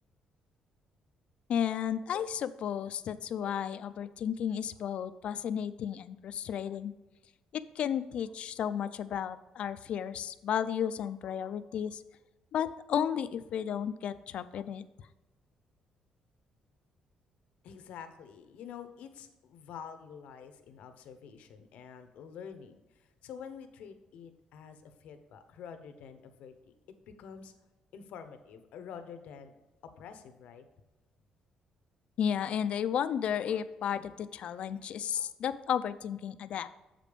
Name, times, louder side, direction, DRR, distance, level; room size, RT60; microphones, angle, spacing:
voice 1, 1.5-6.9 7.5-12.0 12.5-14.8 32.2-36.7, left 9 dB, 60° left, 12 dB, 0.4 m, -33 dB
voice 2, 17.6-26.7 27.2-27.5 27.9-29.5 29.8-30.6, left 7 dB, 85° left, 8 dB, 0.8 m, -48 dB
7.4 x 5.1 x 5.1 m, 1.1 s
cardioid pair, 130°, 2 cm